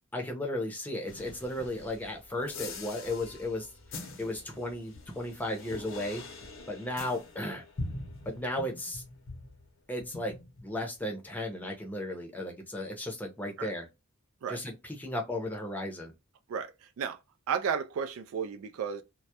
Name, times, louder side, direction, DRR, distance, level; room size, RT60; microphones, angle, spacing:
voice 1, 0.1-3.7 4.2-6.2 6.7-7.6 8.2-9.0 9.9-10.4 10.6-13.9 14.5-16.1, left 1 dB, 10° left, 0.6 m, -35 dB
sound 1, 1.1-9.7 10.0-11.1, left 2 dB, 65° left, 0.7 m, -44 dB
voice 2, 16.5-17.2 17.5-19.0, right 7 dB, 80° right, 0.3 m, -33 dB
2.2 x 2.0 x 2.7 m
head